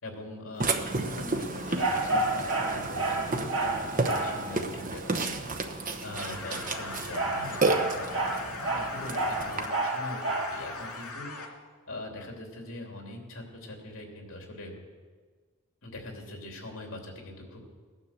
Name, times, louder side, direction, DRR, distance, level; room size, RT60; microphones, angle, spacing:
voice 1, 0.0-5.4 5.8-11.3 11.9-14.7 15.8-17.6, left 1 dB, 65° left, 2 dB, 3.1 m, -42 dB
Burping eructation, 0.6-9.7, right 3 dB, 35° right, 1.0 m, -32 dB
sound 1, 1.8-4.4 6.6-10.6, right 2 dB, 55° right, 2.4 m, -30 dB
sound 2, 6.2-11.5, left 3 dB, 85° left, 2.5 m, -40 dB
17.5 x 9.8 x 7.4 m, 1.5 s
head